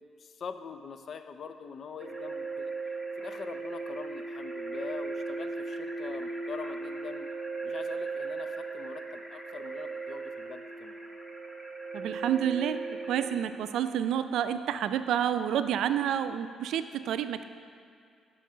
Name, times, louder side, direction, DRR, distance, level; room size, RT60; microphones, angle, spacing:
voice 1, 0.0-2.7 3.2-7.3 7.6-11.0, left 6 dB, 55° left, 9 dB, 0.5 m, -43 dB
sound 1, 2.0-13.4, right 3 dB, 5° left, 1.3 m, -37 dB
voice 2, 11.9-17.4, right 9 dB, 80° right, 11 dB, 0.4 m, -29 dB
11.5 x 4.6 x 5.6 m, 2.3 s
cardioid pair, 90°, 0 cm